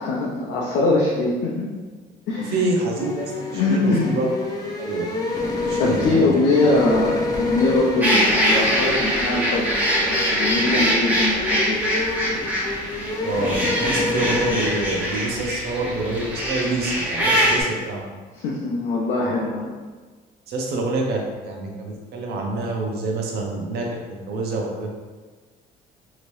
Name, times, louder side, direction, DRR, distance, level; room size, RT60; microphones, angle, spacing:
voice 1, 0.0-1.7 2.3-2.7 3.5-4.2 5.8-11.8 18.3-19.7, left 2 dB, 75° left, -5 dB, 0.5 m, -22 dB
voice 2, 2.4-4.3 4.8-5.1 5.7-6.3 13.2-18.0 19.2-19.3 20.5-24.9, right 2 dB, 70° right, 0 dB, 0.7 m, -26 dB
sound 1, 2.9-14.7, left 2 dB, 20° left, 0.6 m, -28 dB
sound 2, 8.0-17.6, equal, 10° right, 0.8 m, -23 dB
3.1 x 2.8 x 2.6 m, 1.4 s
cardioid pair, 110°, 17 cm